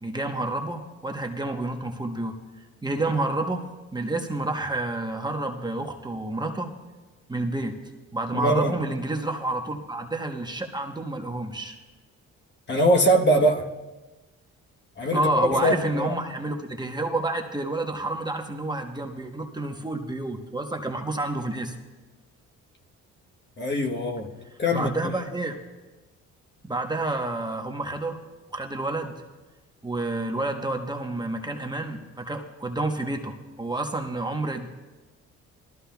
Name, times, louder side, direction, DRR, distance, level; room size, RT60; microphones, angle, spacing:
voice 1, 0.0-2.4 2.8-6.7 7.3-7.7 8.1-11.8 15.1-21.7 24.7-25.6 26.6-28.2 28.5-29.2 29.8-34.7, right 2 dB, 15° right, 1.1 m, -29 dB
voice 2, 8.3-8.7 12.7-13.7 15.0-16.1 23.6-24.3 24.6-24.9, equal, 35° left, 1.2 m, -22 dB
19.0 x 13.0 x 2.3 m
cardioid pair, 90°, 30 cm